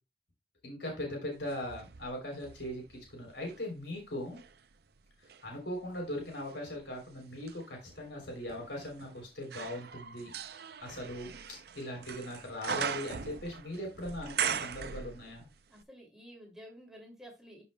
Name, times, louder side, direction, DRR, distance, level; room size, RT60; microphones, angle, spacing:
voice 1, 0.6-4.4 5.4-15.5, left 1 dB, 85° left, 1 dB, 3.4 m, -40 dB
sound 1, 1.4-3.6 4.2-15.5 15.8-15.9, right 7 dB, 60° right, 0.5 m, -41 dB
voice 2, 15.7-17.6, equal, 5° right, -1 dB, 2.7 m, -51 dB
12.0 x 5.4 x 2.2 m, 0.26 s
head